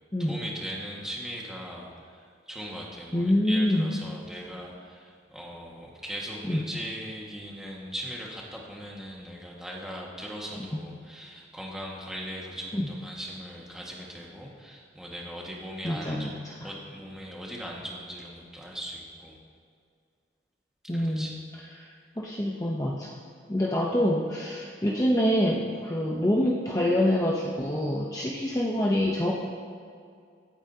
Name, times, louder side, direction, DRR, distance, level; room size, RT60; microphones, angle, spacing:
voice 1, 0.2-16.3 16.6-19.4 20.9-21.4, equal, 5° right, -4 dB, 1.7 m, -39 dB
voice 2, 3.1-3.9 6.5-6.7 10.7-10.8 12.7-12.9 15.8-16.5 20.9-21.3 21.8-21.9 22.2-23.1 23.5-29.3, left 1 dB, 20° left, -3 dB, 0.8 m, -26 dB
24.5 x 8.8 x 2.8 m, 2.2 s
head